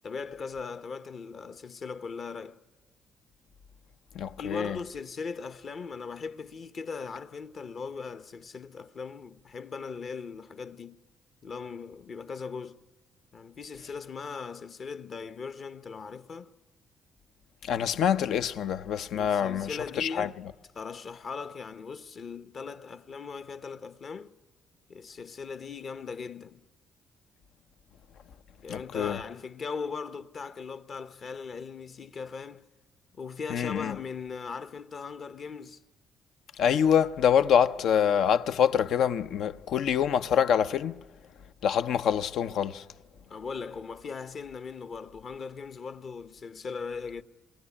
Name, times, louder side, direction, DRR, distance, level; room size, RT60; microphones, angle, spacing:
voice 1, 0.0-2.6 4.4-11.0 11.4-12.8 13.3-16.5 19.1-20.4 20.7-24.3 24.9-26.6 28.6-32.7 33.1-35.8 43.3-47.2, left 5 dB, 50° left, 1.0 m, -39 dB
voice 2, 4.1-4.8 17.6-20.3 28.7-29.2 33.5-34.0 36.6-41.0 41.6-42.8, left 8 dB, 75° left, 0.7 m, -25 dB
27.5 x 20.5 x 9.9 m
cardioid pair, 90°, 0 cm